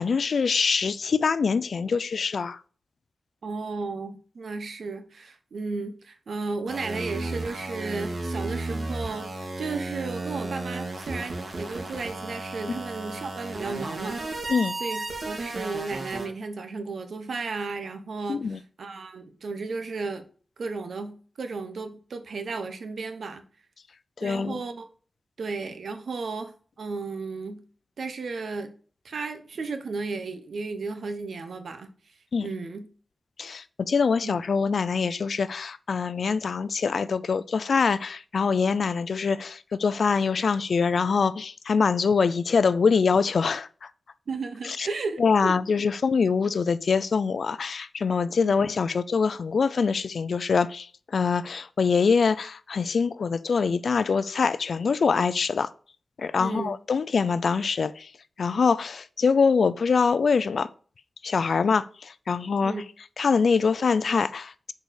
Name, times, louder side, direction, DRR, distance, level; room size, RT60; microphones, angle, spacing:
voice 1, 0.0-2.6 12.7-12.8 14.5-14.8 18.3-18.6 24.2-24.6 32.3-32.5 33.4-43.9 44.6-44.9 45.2-50.9 51.1-55.7 56.2-58.1 58.4-60.7 61.2-62.7 63.2-64.7, left 5 dB, 70° left, 0.4 m, -24 dB
voice 2, 3.4-14.4 14.8-20.2 20.6-23.4 24.2-24.9 25.4-26.5 26.8-27.6 28.0-28.7 29.0-31.9 32.4-32.9 34.2-34.4 44.3-45.6 48.3-48.5 56.4-56.7 62.6-62.8, right 4 dB, 80° right, 1.1 m, -34 dB
sound 1, 6.7-16.3, right 2 dB, 60° right, 2.3 m, -34 dB
6.6 x 4.8 x 6.4 m
wide cardioid pair, 115°, 0 cm